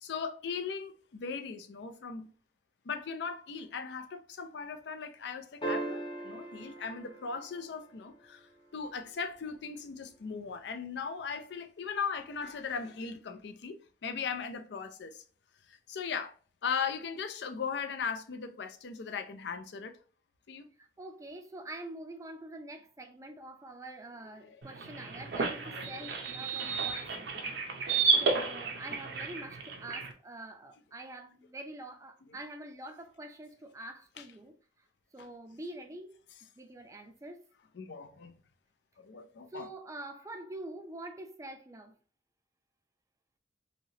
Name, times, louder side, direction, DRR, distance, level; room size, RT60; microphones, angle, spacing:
voice 1, 0.0-2.3 2.8-15.2 15.7-16.3 16.6-20.0 20.5-20.7 24.4-24.6 25.6-26.1 34.2-34.3 35.2-35.3 37.7-38.3 39.0-39.7, left 6 dB, 70° left, 0.5 m, -38 dB
sound 1, 5.6-8.2 10.4-10.5, right 2 dB, 30° left, 0.7 m, -39 dB
voice 2, 20.8-27.6 27.9-34.5 35.1-36.1 36.6-37.4 39.5-41.9, right 1 dB, 20° right, 0.4 m, -46 dB
sound 2, 24.6-30.1, right 4 dB, 70° right, 0.5 m, -32 dB
3.0 x 2.8 x 2.7 m
head